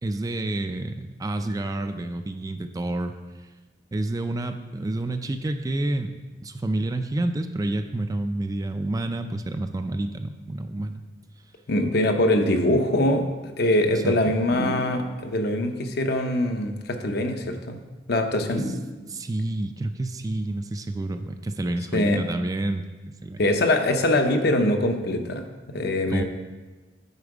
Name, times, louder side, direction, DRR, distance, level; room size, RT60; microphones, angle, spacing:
voice 1, 0.0-3.1 3.9-6.1 6.4-11.0 13.9-14.3 19.1-22.8 23.2-23.5 26.1-26.2, right 2 dB, 20° right, 8 dB, 0.3 m, -29 dB
voice 2, 11.7-13.2 13.6-17.8 18.1-18.6 21.9-22.2 23.4-26.2, left 1 dB, 60° left, 6 dB, 0.7 m, -23 dB
sound 1, 14.5-15.4 18.5-19.4, right 1 dB, 85° left, 2.4 m, -33 dB
8.3 x 4.4 x 4.9 m, 1.2 s
head